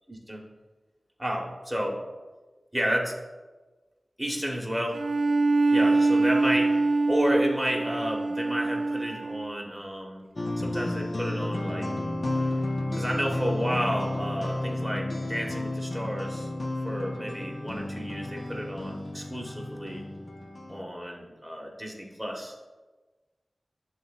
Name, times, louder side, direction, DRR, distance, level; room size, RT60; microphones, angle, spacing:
voice 1, 0.1-0.4 1.2-2.0 2.7-3.1 4.2-5.0 5.7-6.8 7.1-10.2 10.6-11.9 12.9-16.5 16.8-20.1 20.7-22.5, equal, 5° right, 0 dB, 1.4 m, -31 dB
Bowed string instrument, 4.9-9.6, right 3 dB, 80° right, 0.4 m, -24 dB
sound 1, 10.4-20.8, left 1 dB, 45° left, 0.6 m, -32 dB
10.5 x 4.0 x 2.5 m, 1.2 s
wide cardioid pair, 55°, 0 cm